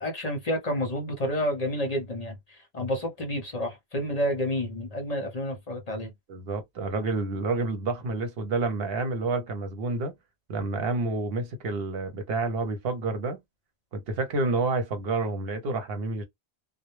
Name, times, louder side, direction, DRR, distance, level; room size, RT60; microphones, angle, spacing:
voice 1, 0.0-6.1, equal, 40° left, 0.8 m, -30 dB
voice 2, 6.3-10.1 10.5-13.4 13.9-16.2, right 3 dB, 70° right, 0.9 m, -29 dB
2.1 x 2.1 x 3.0 m
omnidirectional pair, 1.1 m